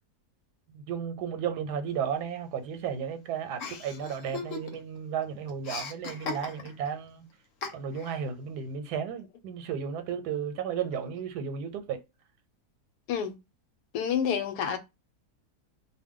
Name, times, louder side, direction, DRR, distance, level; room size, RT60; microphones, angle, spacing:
voice 1, 0.7-7.2 7.7-12.0, right 7 dB, 90° right, 1.2 m, -34 dB
Chuckle chortle, 3.6-5.0 5.2-6.9 7.6-8.2, left 4 dB, 65° left, 0.9 m, -38 dB
voice 2, 13.9-14.8, left 8 dB, 85° left, 1.1 m, -28 dB
2.5 x 2.2 x 3.6 m
omnidirectional pair, 1.7 m